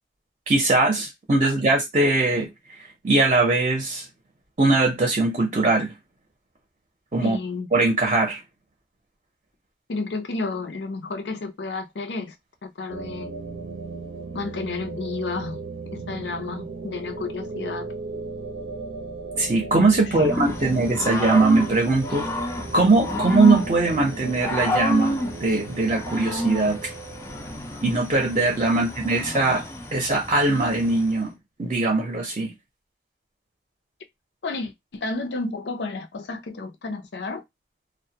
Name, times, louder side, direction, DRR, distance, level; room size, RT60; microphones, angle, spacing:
voice 1, 0.5-2.5 3.0-4.1 4.6-5.9 7.1-7.4 7.7-8.4 19.4-22.3 22.7-26.9 27.8-29.6 29.9-31.3 31.6-32.5, right 3 dB, 35° right, 0.6 m, -21 dB
voice 2, 7.2-7.7 9.9-12.4 12.6-13.3 14.3-15.6 15.9-17.9 20.0-20.8 28.7-29.2 34.4-37.4, left 3 dB, 75° left, 0.5 m, -32 dB
sound 1, 12.9-27.9, right 3 dB, 90° right, 0.6 m, -37 dB
Growling / Cricket, 20.2-31.1, left 1 dB, 15° left, 0.4 m, -30 dB
2.2 x 2.1 x 2.7 m
head